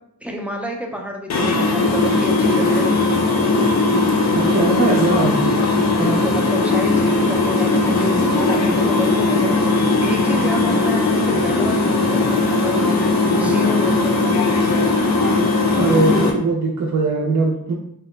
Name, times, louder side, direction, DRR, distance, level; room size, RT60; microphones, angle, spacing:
voice 1, 0.2-3.0 6.0-14.2, equal, 5° right, 0 dB, 0.4 m, -29 dB
sound 1, 1.3-16.3, left 3 dB, 50° left, 0.5 m, -18 dB
voice 2, 4.3-5.4 15.7-17.7, right 3 dB, 55° right, -4 dB, 0.5 m, -20 dB
2.8 x 2.2 x 3.1 m, 0.73 s
wide cardioid pair, 120°, 35 cm